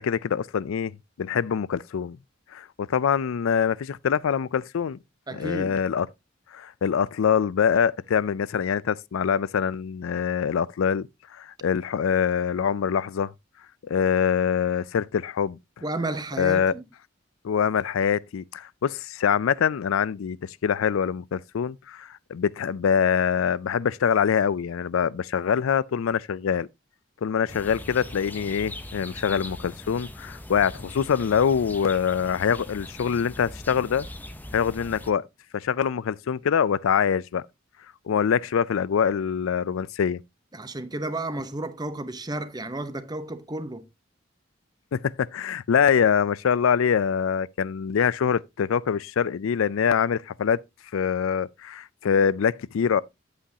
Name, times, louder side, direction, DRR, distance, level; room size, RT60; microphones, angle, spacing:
voice 1, 0.0-2.2 2.5-5.0 5.3-6.1 6.5-11.1 11.3-13.3 13.8-15.6 16.4-16.7 17.4-26.7 27.2-34.1 34.5-35.3 35.5-37.4 38.1-40.2 44.9-50.6 50.9-53.0, left 7 dB, 90° left, 0.4 m, -24 dB
voice 2, 5.3-5.8 15.8-16.8 40.5-43.9, right 2 dB, 20° right, 0.8 m, -32 dB
sound 1, 27.5-35.1, left 1 dB, 10° left, 0.7 m, -40 dB
9.9 x 8.5 x 2.8 m
head